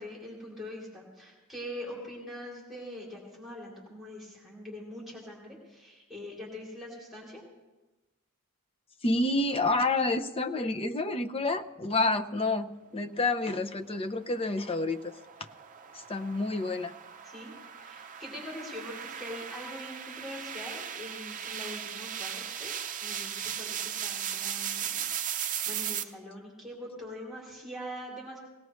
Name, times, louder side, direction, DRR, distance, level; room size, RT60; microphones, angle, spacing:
voice 1, 0.0-7.4 17.2-17.5 17.8-22.7 23.0-28.4, left 1 dB, ahead, -5 dB, 3.1 m, -43 dB
voice 2, 9.0-15.0 15.9-16.9, left 2 dB, 25° left, 7 dB, 0.6 m, -29 dB
sound 1, 14.0-26.0, right 9 dB, 35° right, 0.6 m, -37 dB
19.0 x 18.0 x 3.1 m, 1.1 s
head